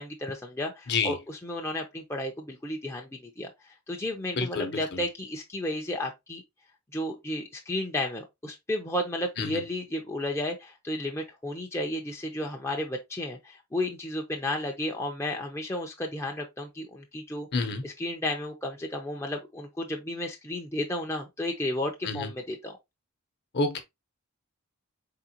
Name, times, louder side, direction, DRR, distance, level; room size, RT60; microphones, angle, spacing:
voice 1, 0.0-6.4 6.9-17.5 17.8-22.7, left 1 dB, 10° left, 0.5 m, -33 dB
voice 2, 4.3-5.0 9.4-9.6 17.5-17.8 22.0-22.3 23.5-23.8, left 3 dB, 50° left, 0.9 m, -29 dB
4.3 x 3.7 x 2.8 m
head